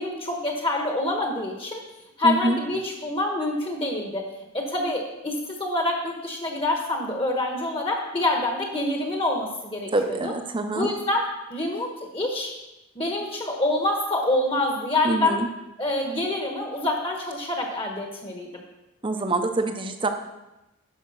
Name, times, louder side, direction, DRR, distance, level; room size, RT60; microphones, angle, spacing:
voice 1, 0.0-1.8 2.2-4.3 4.5-10.3 10.7-12.5 12.9-15.4 15.8-18.5, left 2 dB, 25° left, 1 dB, 1.2 m, -26 dB
voice 2, 2.2-2.6 9.9-10.9 15.0-15.5 19.0-20.1, right 2 dB, 20° right, 7 dB, 0.7 m, -25 dB
11.5 x 5.0 x 6.4 m, 0.97 s
head